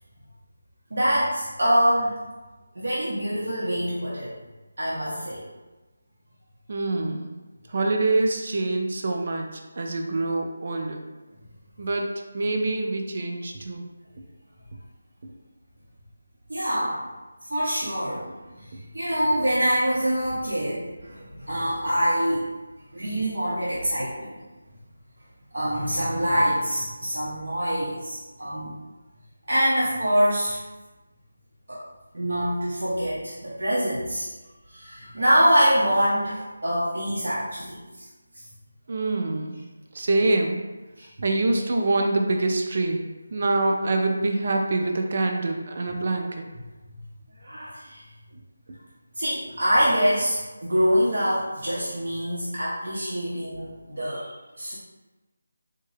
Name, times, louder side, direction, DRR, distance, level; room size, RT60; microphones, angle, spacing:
voice 1, 0.9-2.1 2.8-4.3 4.8-5.5 16.5-17.0 17.5-18.3 18.6-22.5 22.9-24.4 25.5-28.8 29.5-30.6 31.7-31.8 32.1-34.3 34.7-37.8 38.3-38.4 41.0-41.1 47.4-48.0 49.2-54.8, equal, 90° right, -7 dB, 0.8 m, -25 dB
voice 2, 6.7-7.3 7.7-11.1 11.8-12.1 12.3-13.8 38.9-39.6 39.9-40.6 41.2-46.5, right 2 dB, 40° right, 3 dB, 0.4 m, -25 dB
3.6 x 2.2 x 3.2 m, 1.2 s
figure-of-eight pair, 175°, 0 cm